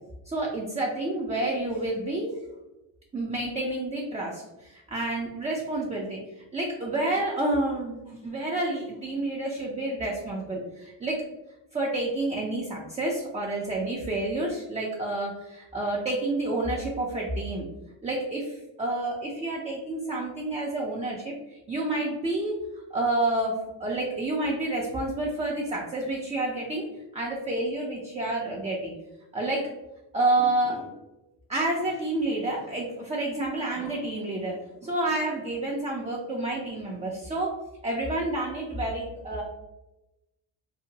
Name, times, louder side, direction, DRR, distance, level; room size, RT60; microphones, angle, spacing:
voice 1, 0.3-2.3 3.1-6.2 6.5-11.2 11.7-17.7 18.0-22.6 22.9-26.9 27.1-28.9 29.3-29.7 30.1-30.9 31.5-39.4, right 2 dB, 15° right, -3 dB, 0.3 m, -29 dB
2.8 x 2.1 x 2.6 m, 0.99 s
cardioid pair, 90°, 49 cm